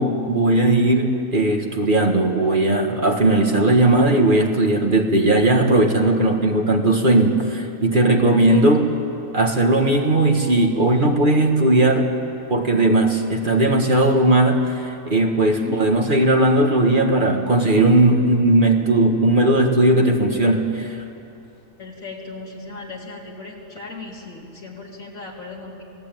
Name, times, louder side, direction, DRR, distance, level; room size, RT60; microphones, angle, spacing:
voice 1, 0.0-8.8 9.3-12.1 12.5-21.0, right 2 dB, 35° right, 3 dB, 1.8 m, -17 dB
voice 2, 8.2-8.9 15.6-15.8 21.8-25.8, left 3 dB, 70° left, -2 dB, 3.9 m, -36 dB
28.0 x 18.0 x 9.2 m, 2.7 s
omnidirectional pair, 1.4 m